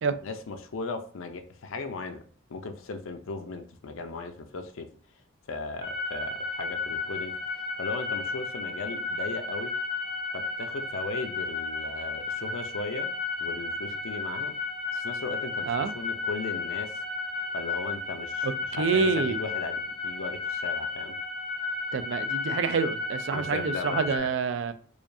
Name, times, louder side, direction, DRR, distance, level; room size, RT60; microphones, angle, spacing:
voice 1, 0.2-2.2 2.5-4.9 5.5-7.4 7.8-9.7 10.3-13.1 13.4-14.5 14.9-17.0 17.5-18.5 18.8-21.2 23.3-24.3, left 3 dB, 85° left, 0.5 m, -37 dB
sound 1, 5.8-24.2, left 4 dB, 35° right, 1.1 m, -33 dB
voice 2, 18.4-19.4 21.9-24.7, right 5 dB, 65° right, 0.3 m, -27 dB
4.8 x 2.3 x 2.6 m
head